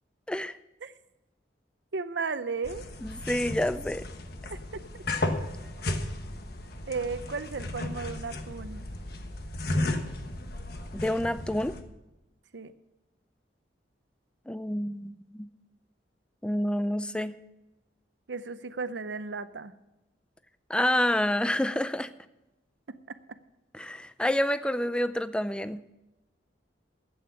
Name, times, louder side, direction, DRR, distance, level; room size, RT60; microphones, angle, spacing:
voice 1, 1.9-2.9 4.7-4.8 6.9-8.8 12.5-12.7 18.3-19.7 23.1-23.2, right 4 dB, 75° right, 13 dB, 0.7 m, -34 dB
sound 1, 2.6-11.8, left 1 dB, 60° left, 1.2 m, -34 dB
voice 2, 3.0-4.0 10.9-11.8 14.5-15.5 16.4-17.4 20.7-22.1 23.7-25.8, left 1 dB, 5° left, 13 dB, 0.4 m, -28 dB
12.0 x 8.7 x 6.8 m, 0.98 s
head